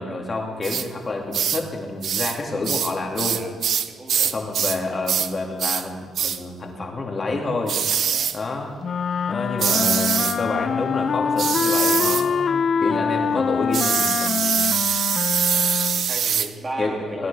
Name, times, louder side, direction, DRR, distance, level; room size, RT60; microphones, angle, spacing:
voice 1, 0.0-3.4 4.3-7.8 8.3-8.8 9.3-14.7 15.5-15.8 16.8-17.3, left 2 dB, 35° left, 1 dB, 2.3 m, -28 dB
sound 1, 0.6-0.9 1.3-1.6 2.0-2.4 2.6-4.8 5.1-5.3 5.6-5.9 6.1-6.4 7.7-8.4 9.6-10.4 11.4-12.3 13.7-16.5, right 8 dB, 65° right, 0.5 m, -23 dB
voice 2, 3.9-4.3 8.1-8.4 15.9-17.3, right 2 dB, 30° right, 0 dB, 2.2 m, -35 dB
sound 2, 8.8-16.2, left 6 dB, 50° left, 0.3 m, -24 dB
19.5 x 9.8 x 3.4 m, 1.5 s
cardioid pair, 90°, 0 cm